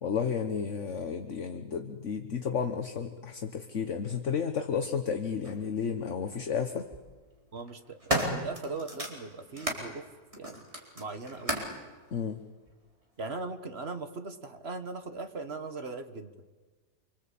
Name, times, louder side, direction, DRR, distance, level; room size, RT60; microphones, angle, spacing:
voice 1, 0.0-6.9 12.1-12.4, left 6 dB, 50° left, 7 dB, 1.4 m, -32 dB
sound 1, 5.4-5.6 6.7-7.0 7.6-9.9 10.3-11.8 12.7-12.8, equal, 20° right, 4.3 m, -34 dB
voice 2, 7.5-10.1 10.4-10.6 10.9-11.6 13.2-16.3, right 3 dB, 40° right, 8 dB, 1.7 m, -39 dB
27.0 x 25.0 x 8.5 m, 1.3 s
omnidirectional pair, 1.8 m